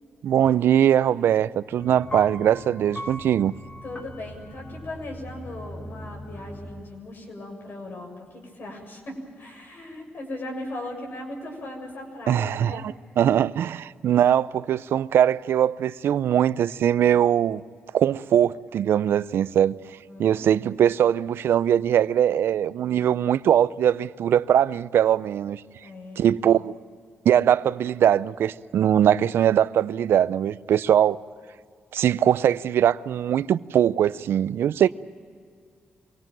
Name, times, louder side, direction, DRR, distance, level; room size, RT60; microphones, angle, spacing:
voice 1, 0.2-3.5 12.3-17.6 17.9-19.8 20.2-25.6 26.2-26.8 27.2-31.2 31.9-34.9, right 10 dB, 80° right, 0.5 m, -21 dB
sound 1, 1.8-6.8, left 1 dB, 30° left, 3.8 m, -39 dB
voice 2, 3.8-12.9 20.1-20.4 25.8-26.3 34.8-34.9, left 1 dB, 60° left, 7.1 m, -38 dB
25.0 x 18.0 x 9.2 m
cardioid pair, 60°, 4 cm